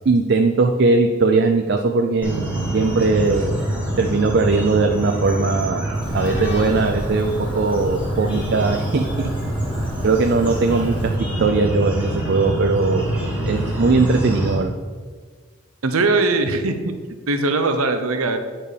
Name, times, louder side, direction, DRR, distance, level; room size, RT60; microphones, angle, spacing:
voice 1, 0.1-3.5 4.0-5.9 6.1-9.3 10.0-11.1 11.4-13.1 13.4-14.7, right 3 dB, 50° right, 4 dB, 0.4 m, -19 dB
sound 1, 2.2-14.5, right 1 dB, 5° right, 1.5 m, -25 dB
sound 2, 6.0-11.2, equal, 25° left, 0.9 m, -34 dB
voice 2, 15.8-16.9 17.3-18.4, right 3 dB, 85° right, 7 dB, 0.8 m, -20 dB
8.9 x 4.4 x 5.0 m, 1.5 s
head